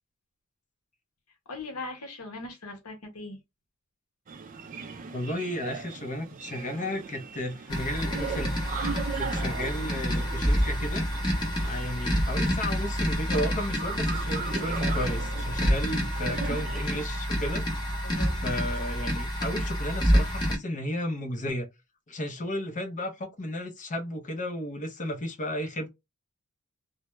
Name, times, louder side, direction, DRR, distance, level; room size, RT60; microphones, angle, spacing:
voice 1, 1.5-3.4 18.0-18.4, left 2 dB, 85° left, 1.0 m, -39 dB
sound 1, 4.3-17.1, right 6 dB, 40° right, 0.3 m, -39 dB
voice 2, 5.1-8.7 9.2-11.4 11.6-17.6 18.4-21.7 22.1-25.9, left 1 dB, 35° left, 0.6 m, -33 dB
sound 2, 7.7-20.6, equal, 20° left, 1.0 m, -28 dB
2.1 x 2.1 x 3.0 m
head